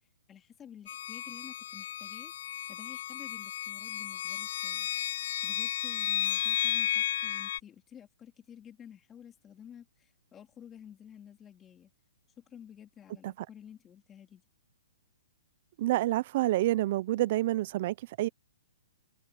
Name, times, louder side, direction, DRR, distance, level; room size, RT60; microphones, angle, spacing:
voice 1, 0.3-2.3 2.7-4.9 5.4-11.9 12.4-14.4, left 9 dB, 15° left, 3.6 m, -51 dB
sound 1, 0.9-7.6, left 11 dB, 55° left, 0.4 m, -33 dB
voice 2, 15.8-18.3, right 16 dB, 45° right, 0.5 m, -28 dB
open air
hypercardioid pair, 145°, 0 cm